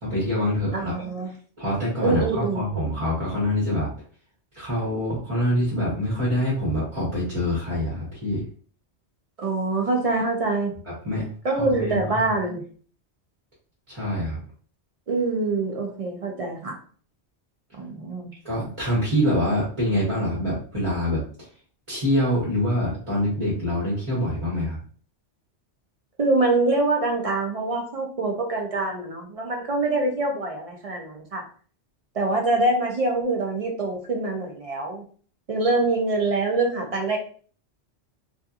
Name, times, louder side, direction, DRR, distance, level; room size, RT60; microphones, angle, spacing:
voice 1, 0.0-0.9 1.6-3.9 4.5-8.4 10.9-11.3 11.5-12.2 13.9-14.4 18.4-21.2 21.9-24.8, left 1 dB, 30° right, -7 dB, 1.0 m, -25 dB
voice 2, 0.7-1.3 2.0-2.6 9.4-10.8 11.4-12.6 15.1-16.8 17.8-18.3 26.2-31.4 32.1-35.1 35.5-37.2, right 2 dB, 50° right, 1 dB, 0.4 m, -24 dB
2.7 x 2.4 x 2.4 m, 0.44 s
omnidirectional pair, 1.2 m